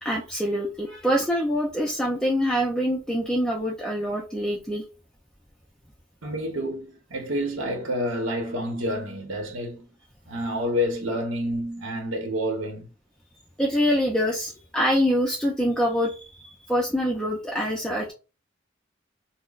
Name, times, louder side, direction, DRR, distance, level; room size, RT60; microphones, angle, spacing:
voice 1, 0.0-4.8 13.6-18.1, equal, 5° left, 0.4 m, -25 dB
voice 2, 6.2-9.8 10.3-12.9, equal, 80° right, 0.9 m, -28 dB
5.8 x 2.0 x 2.4 m
head